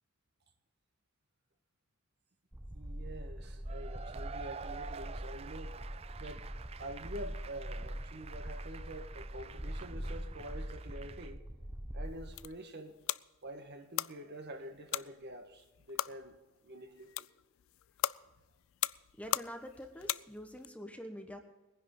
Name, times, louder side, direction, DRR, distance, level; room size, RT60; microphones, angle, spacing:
sound 1, 2.5-12.5, equal, 10° right, 0.8 m, -43 dB
voice 1, 2.7-11.4 11.9-13.0 13.4-16.4 16.6-17.3, right 1 dB, 55° right, 1.6 m, -47 dB
Cheering / Applause / Crowd, 3.7-11.3, right 6 dB, 30° right, 0.4 m, -49 dB
sound 2, 12.0-20.7, left 13 dB, 70° left, 0.3 m, -40 dB
voice 2, 19.2-21.4, equal, 5° left, 1.2 m, -46 dB
21.0 x 10.5 x 3.9 m
head